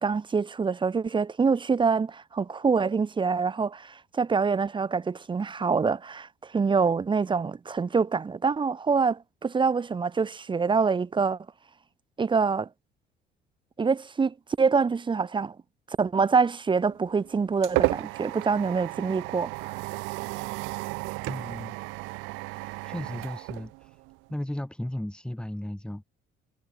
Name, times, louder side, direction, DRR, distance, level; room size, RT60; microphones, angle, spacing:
voice 1, 0.0-11.4 12.2-12.7 13.8-15.5 16.0-19.7, right 5 dB, 25° right, 1.2 m, -25 dB
sound 1, 16.9-24.3, right 26 dB, 90° right, 0.5 m, -33 dB
voice 2, 21.3-21.7 22.4-24.0 24.3-26.0, left 1 dB, 5° left, 7.4 m, -35 dB
cardioid pair, 100°, 19 cm